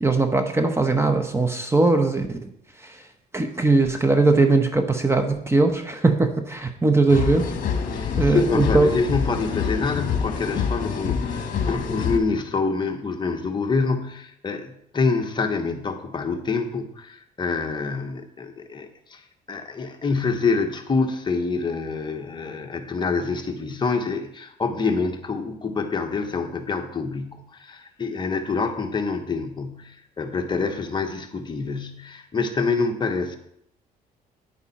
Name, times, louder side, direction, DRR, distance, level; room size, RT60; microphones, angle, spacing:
voice 1, 0.0-2.5 2.8-3.0 3.3-7.5 8.2-9.0, right 3 dB, 15° right, 6 dB, 1.0 m, -20 dB
sound 1, 7.1-12.2, left 6 dB, 50° left, 1.8 m, -26 dB
voice 2, 7.9-19.2 19.5-33.4, left 4 dB, 25° left, 5 dB, 1.3 m, -26 dB
10.0 x 9.0 x 4.3 m, 0.72 s
cardioid pair, 110°, 17 cm